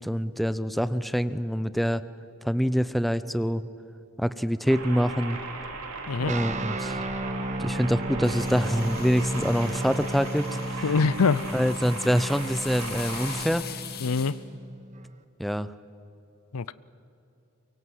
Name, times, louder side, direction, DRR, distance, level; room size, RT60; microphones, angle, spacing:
voice 1, 0.0-2.0 2.4-3.6 4.2-5.4 6.2-7.0 7.6-10.9 11.5-13.6 15.4-15.7, equal, ahead, 14 dB, 0.5 m, -25 dB
sound 1, 4.7-13.5, right 3 dB, 80° right, 3.1 m, -37 dB
sound 2, 6.3-15.2, right 1 dB, 35° right, 1.0 m, -34 dB
sound 3, 8.2-14.3, left 9 dB, 45° left, 1.9 m, -42 dB
voice 2, 10.8-11.5 14.0-14.4 16.5-16.7, left 4 dB, 80° left, 19 dB, 0.6 m, -24 dB
23.5 x 23.5 x 7.8 m, 2.7 s
head